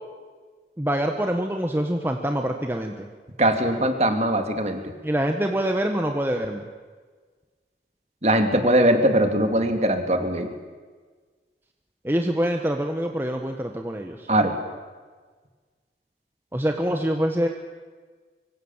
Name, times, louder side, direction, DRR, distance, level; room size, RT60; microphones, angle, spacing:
voice 1, 0.8-3.1 5.0-6.7 12.0-14.3 16.5-17.5, equal, 10° right, 4 dB, 1.3 m, -25 dB
voice 2, 3.4-4.8 8.2-10.5 14.3-14.5, right 1 dB, 35° right, 6 dB, 2.6 m, -21 dB
25.0 x 24.0 x 7.4 m, 1.5 s
head